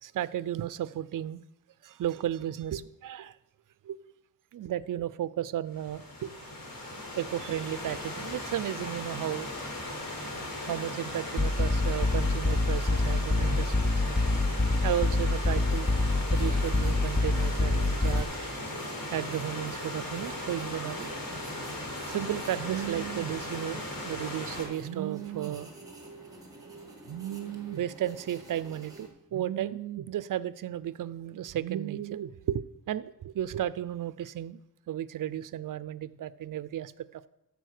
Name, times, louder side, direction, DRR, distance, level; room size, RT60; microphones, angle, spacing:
voice 1, 0.0-1.4 1.8-3.4 3.8-4.0 4.5-6.4 7.2-9.5 10.7-13.9 14.3-14.4 14.8-15.9 16.3-18.3 19.1-21.1 22.1-25.7 27.1-34.6 34.9-37.3, right 11 dB, 60° right, 0.5 m, -34 dB
Stream / Liquid, 5.7-24.6, left 1 dB, 70° left, 4.0 m, -38 dB
sound 1, 11.4-18.2, left 2 dB, 15° left, 0.5 m, -26 dB
sound 2, 15.4-29.1, right 2 dB, 10° right, 2.1 m, -48 dB
14.0 x 5.0 x 6.6 m
wide cardioid pair, 125°, 37 cm